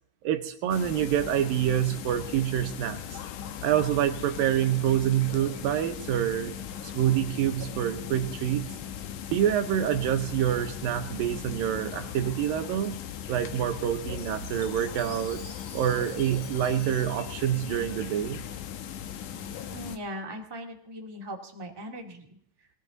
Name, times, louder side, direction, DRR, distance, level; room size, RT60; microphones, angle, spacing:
voice 1, 0.2-3.2 3.6-6.5 6.8-8.6 9.3-13.0 13.3-15.4 15.7-18.4, right 11 dB, 75° right, 7 dB, 2.2 m, -27 dB
sound 1, 0.7-20.0, left 9 dB, 90° left, 1.7 m, -38 dB
Chime, 14.2-18.5, left 5 dB, 65° left, 3.2 m, -50 dB
voice 2, 19.7-22.7, equal, 20° right, 0 dB, 0.7 m, -40 dB
21.5 x 17.0 x 4.0 m, 0.68 s
omnidirectional pair, 5.0 m